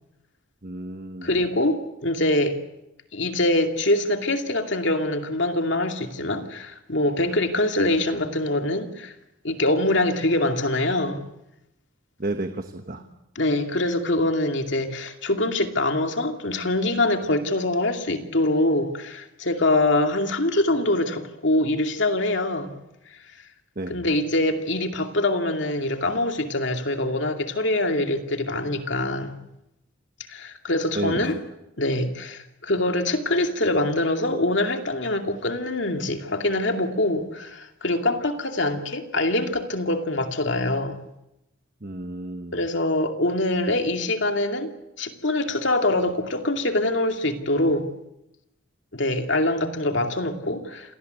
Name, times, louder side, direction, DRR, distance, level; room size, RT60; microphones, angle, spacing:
voice 1, 0.6-1.3 12.2-13.0 23.8-24.0 31.0-31.2 41.8-42.6, right 2 dB, 45° right, 1.2 m, -31 dB
voice 2, 1.2-2.6 3.1-9.1 9.4-11.2 13.4-22.7 23.9-29.3 30.3-31.4 31.8-41.0 42.5-44.7 45.0-47.9 48.9-51.0, left 1 dB, 60° left, 2.5 m, -24 dB
27.5 x 18.5 x 8.2 m
head